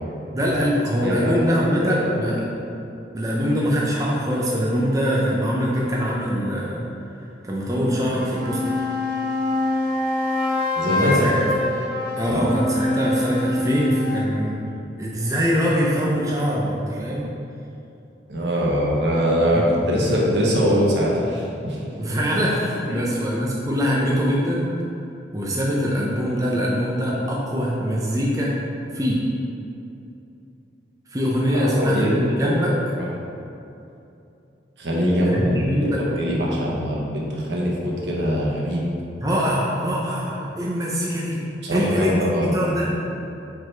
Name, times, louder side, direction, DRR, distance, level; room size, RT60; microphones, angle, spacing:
voice 1, 0.3-2.5 3.1-6.9 7.5-8.7 10.9-11.5 12.2-14.7 15.0-17.2 19.5-19.7 22.0-24.8 25.3-28.6 28.9-29.3 31.1-32.8 35.3-36.0 39.2-42.9, equal, 20° right, -4 dB, 0.7 m, -23 dB
voice 2, 1.0-1.3 1.8-2.3 10.8-11.6 12.2-12.5 18.3-21.8 22.9-23.0 31.5-32.4 33.0-33.1 34.8-35.4 35.8-38.8 41.6-42.5, equal, 80° right, -4 dB, 1.1 m, -22 dB
sound 1, 8.1-14.3, left 2 dB, 50° right, 1.0 m, -25 dB
5.2 x 4.1 x 4.6 m, 2.7 s
head